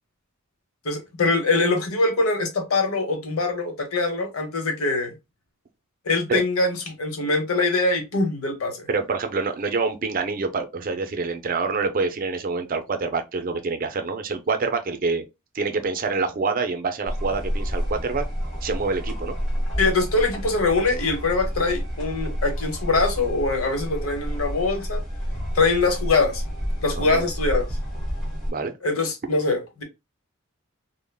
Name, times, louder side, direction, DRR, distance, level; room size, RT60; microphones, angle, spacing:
voice 1, 0.8-5.1 6.1-8.9 19.8-25.0 25.5-26.4 26.8-27.7 28.8-29.8, left 3 dB, 90° left, 0.9 m, -23 dB
voice 2, 8.9-15.2 15.5-18.2 18.6-19.4 26.9-27.3 28.5-28.7, right 4 dB, 40° right, 0.4 m, -26 dB
sound 1, 17.0-28.5, equal, ahead, 1.2 m, -29 dB
3.3 x 2.1 x 2.2 m
head